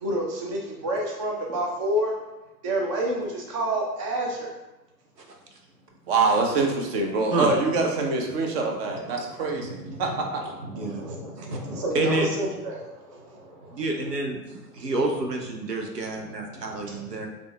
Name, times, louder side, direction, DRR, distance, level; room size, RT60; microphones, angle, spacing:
voice 1, 0.0-2.1 2.6-4.5 8.9-9.0 9.6-12.8 16.9-17.3, right 1 dB, 25° right, -1 dB, 0.3 m, -29 dB
voice 2, 6.1-10.4, right 3 dB, 40° right, 2 dB, 0.9 m, -25 dB
voice 3, 10.7-11.1 11.4-11.6 11.9-12.3 13.7-17.3, right 2 dB, 80° right, 2 dB, 0.9 m, -28 dB
5.2 x 2.6 x 3.3 m, 1.0 s
figure-of-eight pair, 95°, 48 cm